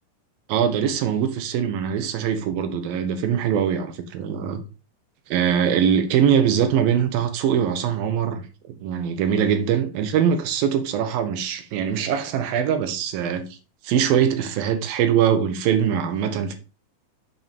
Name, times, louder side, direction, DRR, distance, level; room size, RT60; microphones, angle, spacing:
voice 1, 0.5-4.6 5.3-13.5 13.8-16.5, right 8 dB, 70° right, 2.7 m, -22 dB
7.5 x 6.9 x 5.3 m
omnidirectional pair, 4.8 m